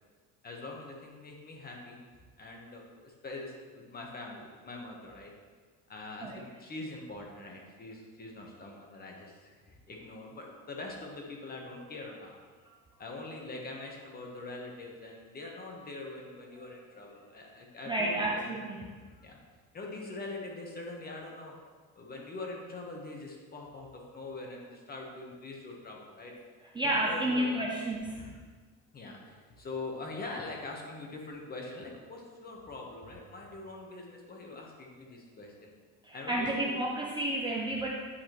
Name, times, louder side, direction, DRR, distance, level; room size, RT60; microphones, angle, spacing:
voice 1, 0.4-2.0 2.4-5.3 5.9-12.4 13.0-18.5 19.2-19.4 19.7-21.5 22.0-26.3 26.8-27.7 28.1-28.3 28.9-35.7 36.1-36.9, left 2 dB, 25° left, 0 dB, 1.1 m, -43 dB
voice 2, 17.9-18.8 26.7-28.3 36.0-37.9, right 1 dB, 15° right, -3 dB, 0.5 m, -31 dB
8.5 x 4.9 x 3.0 m, 1.5 s
cardioid pair, 145°, 35 cm